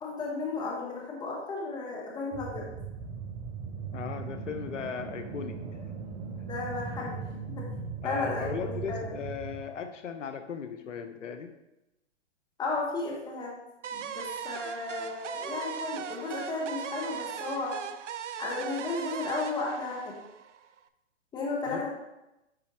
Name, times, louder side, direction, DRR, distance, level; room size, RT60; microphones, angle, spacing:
voice 1, 0.0-2.7 6.4-7.2 7.6-7.7 8.0-9.2 12.6-13.5 13.9-17.8 18.4-20.2 21.3-21.9, left 3 dB, 10° left, -2 dB, 1.2 m, -34 dB
sound 1, 2.3-9.6, right 5 dB, 20° right, 0.6 m, -39 dB
voice 2, 3.9-5.6 8.0-11.5 21.7-21.9, left 6 dB, 80° left, 8 dB, 0.7 m, -37 dB
sound 2, 13.8-20.8, right 8 dB, 75° right, 0.5 m, -38 dB
9.5 x 4.1 x 3.0 m, 0.94 s
hypercardioid pair, 125°, 36 cm